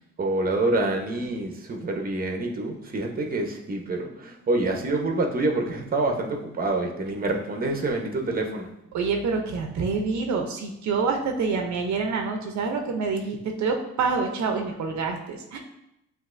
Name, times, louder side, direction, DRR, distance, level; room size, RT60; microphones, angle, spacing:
voice 1, 0.2-8.7, right 2 dB, 30° right, 3 dB, 0.8 m, -27 dB
voice 2, 8.9-15.6, right 4 dB, 65° right, 3 dB, 0.7 m, -27 dB
7.6 x 2.6 x 2.6 m, 0.84 s
cardioid pair, 90°, 30 cm